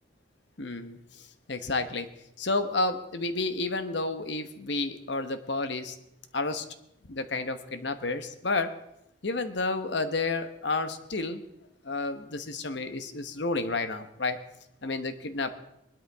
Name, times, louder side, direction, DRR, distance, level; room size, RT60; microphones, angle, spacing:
voice 1, 0.6-2.1 2.4-5.9 6.3-6.6 7.1-8.8 9.2-11.4 11.8-14.4 14.8-15.5, left 3 dB, 65° left, 9 dB, 1.1 m, -31 dB
20.0 x 12.5 x 3.5 m, 0.82 s
head